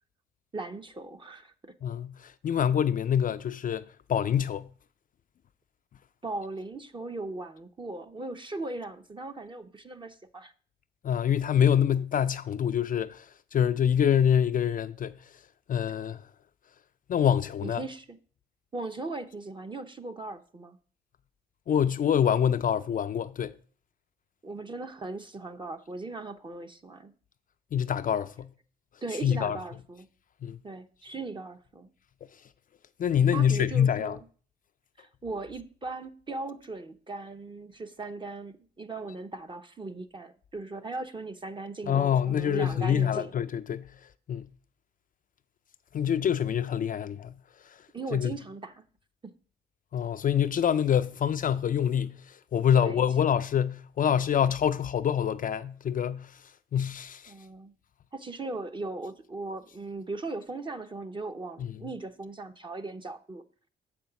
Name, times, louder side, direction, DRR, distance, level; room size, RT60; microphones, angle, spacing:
voice 1, 0.5-1.7 6.2-10.5 17.6-18.2 18.7-20.8 24.4-27.1 29.0-30.1 30.6-31.9 33.3-34.2 35.0-43.3 47.9-48.8 52.7-53.0 56.7-56.8 57.3-57.7 58.1-63.4, right 3 dB, 25° right, 0.7 m, -38 dB
voice 2, 1.8-4.7 11.0-13.3 13.5-15.1 15.7-16.2 17.1-17.8 21.7-23.5 27.7-28.5 29.2-29.6 30.4-30.6 33.0-34.2 41.9-43.9 44.3-44.5 45.9-47.3 47.7-47.8 48.1-48.3 49.9-56.4 56.7-57.3 61.6-61.7, left 8 dB, 45° left, 0.4 m, -26 dB
7.2 x 5.2 x 5.8 m
cardioid pair, 90°, 20 cm